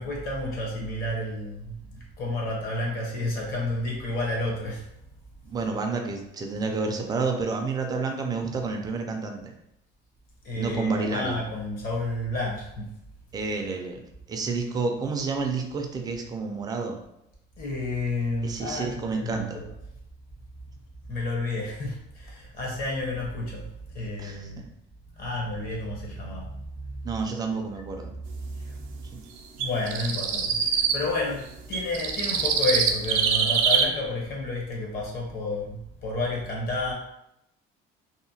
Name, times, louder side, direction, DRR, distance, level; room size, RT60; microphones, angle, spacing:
voice 1, 0.0-4.8 10.4-12.9 17.6-19.7 21.1-24.6 25.2-27.2 27.7-27.8 28.4-29.0 29.6-36.9, left 2 dB, 45° left, -2 dB, 0.8 m, -31 dB
voice 2, 5.4-9.5 10.6-11.3 13.3-17.0 18.4-19.6 24.2-24.6 27.0-28.2 29.1-29.2, right 4 dB, 20° right, 3 dB, 0.3 m, -30 dB
sound 1, 29.6-31.0 31.7-33.8, right 6 dB, 85° right, 0.4 m, -24 dB
2.8 x 2.0 x 2.7 m, 0.81 s
cardioid pair, 145°, 20 cm